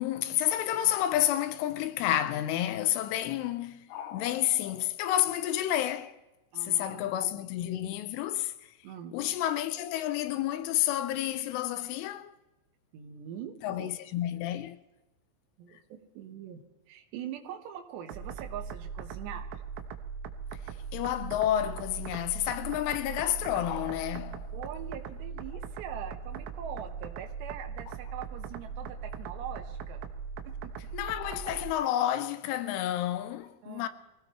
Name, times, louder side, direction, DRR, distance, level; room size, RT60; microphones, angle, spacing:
voice 1, 0.0-6.1 6.6-8.5 9.1-12.3 13.6-14.8 20.9-24.5 30.9-33.9, left 12 dB, 85° left, 3.1 m, -30 dB
voice 2, 6.5-7.4 8.8-9.2 12.9-13.9 15.6-16.6 16.9-19.6 24.5-30.0 30.4-30.7 33.6-33.9, right 9 dB, 70° right, 3.2 m, -43 dB
sound 1, 18.1-31.7, right 6 dB, 85° right, 3.6 m, -40 dB
24.5 x 16.5 x 3.2 m
omnidirectional pair, 5.7 m